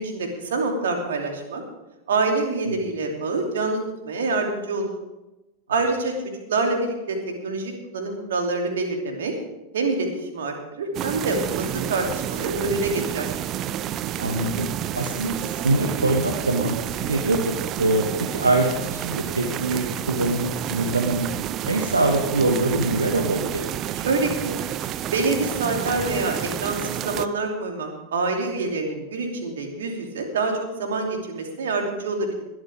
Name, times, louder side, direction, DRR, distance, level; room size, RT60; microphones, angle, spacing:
voice 1, 0.0-1.6 2.1-3.8 4.0-4.9 5.7-9.3 9.7-10.1 10.3-13.3 24.0-24.5 25.1-32.4, right 3 dB, 60° right, 2 dB, 2.9 m, -26 dB
sound 1, 10.9-27.3, right 11 dB, 35° right, 0.6 m, -30 dB
voice 2, 14.2-14.7 14.9-21.3 21.6-23.7, right 2 dB, 80° right, 3 dB, 1.3 m, -24 dB
20.5 x 12.5 x 3.6 m, 0.99 s
figure-of-eight pair, 90°, 0 cm